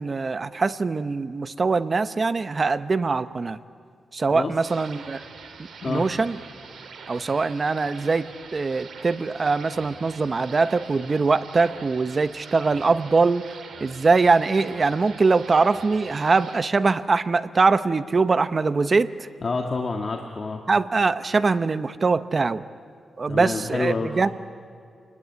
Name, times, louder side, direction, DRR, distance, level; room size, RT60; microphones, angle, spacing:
voice 1, 0.0-3.6 4.1-5.2 5.6-6.4 7.1-13.4 13.8-19.3 20.7-22.6 23.2-24.3, right 4 dB, 35° right, 12 dB, 0.9 m, -22 dB
sound 1, 4.6-16.6, right 5 dB, 85° right, 3.1 m, -44 dB
voice 2, 19.4-20.6 23.3-24.3, left 4 dB, 45° left, 2 dB, 1.7 m, -28 dB
28.0 x 21.0 x 9.6 m, 2.3 s
wide cardioid pair, 110°, 0 cm